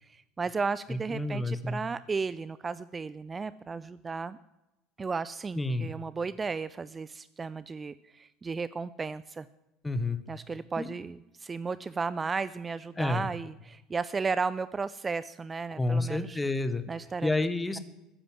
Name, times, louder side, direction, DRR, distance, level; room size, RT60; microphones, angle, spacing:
voice 1, 0.1-4.4 5.0-9.5 10.3-16.4 16.9-17.3, right 4 dB, 25° right, 17 dB, 0.4 m, -34 dB
voice 2, 0.9-1.8 5.5-5.9 9.8-10.2 10.8-10.9 13.0-13.3 15.8-16.8 17.2-17.8, left 2 dB, 10° left, 12 dB, 1.4 m, -29 dB
14.0 x 10.0 x 7.5 m, 0.97 s
figure-of-eight pair, 65°, 0 cm